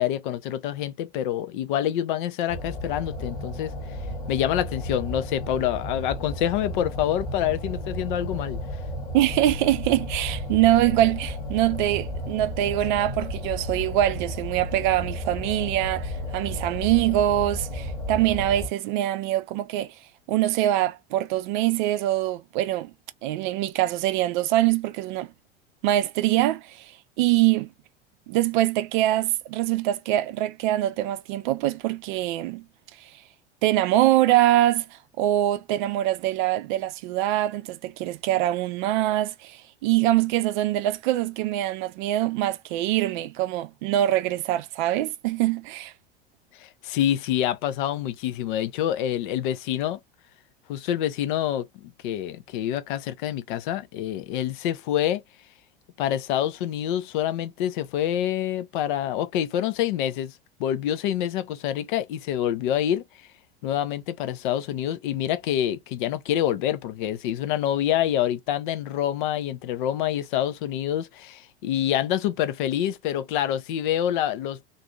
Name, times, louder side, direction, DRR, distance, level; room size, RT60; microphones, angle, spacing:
voice 1, 0.0-3.7 4.3-8.6 46.6-50.0 50.7-55.2 56.0-60.3 60.6-63.0 63.6-74.7, left 11 dB, 55° left, 0.6 m, -26 dB
sound 1, 2.5-18.7, equal, 70° left, 1.9 m, -33 dB
voice 2, 9.1-19.9 20.3-22.9 23.2-25.3 25.8-26.9 27.2-27.7 28.3-32.7 33.6-34.9 35.2-45.9, right 14 dB, 50° right, 0.6 m, -24 dB
3.8 x 2.6 x 2.3 m
figure-of-eight pair, 75°, 30 cm